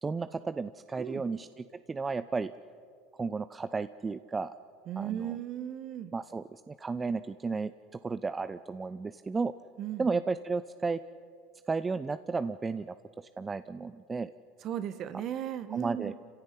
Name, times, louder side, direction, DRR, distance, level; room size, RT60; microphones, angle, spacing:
voice 1, 0.0-2.5 3.2-4.5 5.0-5.4 6.1-7.7 8.0-9.5 10.0-11.0 11.7-14.3 15.7-16.1, right 4 dB, 20° right, 12 dB, 0.6 m, -33 dB
voice 2, 4.9-6.1 9.8-10.1 14.6-16.1, right 10 dB, 50° right, 12 dB, 1.7 m, -36 dB
27.0 x 16.0 x 9.8 m, 2.3 s
supercardioid pair, 100°, 0 cm